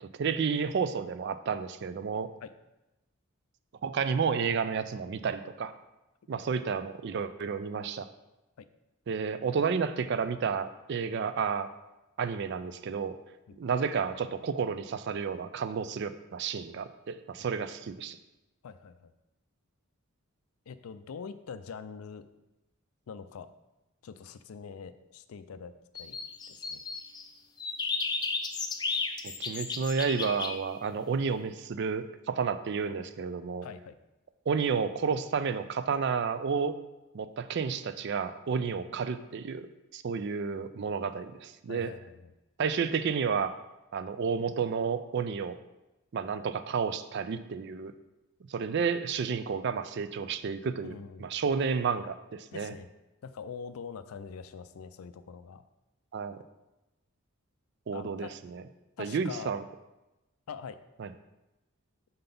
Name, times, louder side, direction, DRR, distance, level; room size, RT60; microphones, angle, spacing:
voice 1, 0.0-2.3 3.8-5.7 6.3-8.1 9.1-11.7 12.2-13.2 13.6-18.2 29.2-33.7 34.5-36.8 37.1-39.7 39.9-41.9 42.6-43.6 43.9-45.6 46.1-47.9 48.5-52.7 56.1-56.4 57.9-58.6 59.0-59.6 61.0-61.1, right 5 dB, 55° right, 12 dB, 0.4 m, -31 dB
voice 2, 18.6-19.1 20.7-22.3 23.1-23.5 24.0-25.7 26.0-26.2 26.5-26.8 33.6-34.0 41.7-42.3 50.8-51.3 52.5-52.9 53.2-55.6 57.9-58.3 59.0-59.5 60.5-60.8, left 6 dB, 85° left, 12 dB, 0.4 m, -43 dB
sound 1, 25.9-27.3 27.6-30.6, left 4 dB, 20° left, 0.4 m, -33 dB
5.6 x 3.9 x 5.2 m, 0.99 s
head